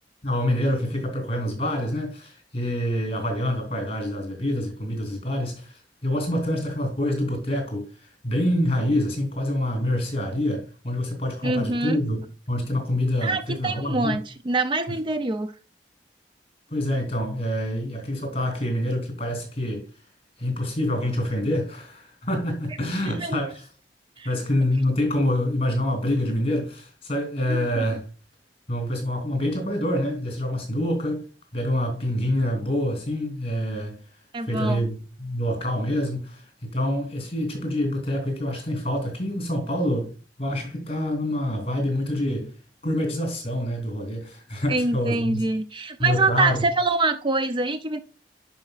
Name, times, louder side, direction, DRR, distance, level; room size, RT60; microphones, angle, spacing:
voice 1, 0.2-12.2 12.5-14.2 16.7-19.9 20.4-23.7 24.2-28.1 28.7-31.2 31.5-34.0 34.4-40.1 40.4-42.5 42.8-45.5 46.0-46.7, left 1 dB, 35° left, 3.1 m, -26 dB
voice 2, 11.4-12.0 13.2-15.5 23.0-23.4 24.2-24.3 27.5-27.9 34.3-34.9 44.7-48.0, right 3 dB, 30° right, 0.4 m, -25 dB
10.5 x 5.0 x 2.4 m
head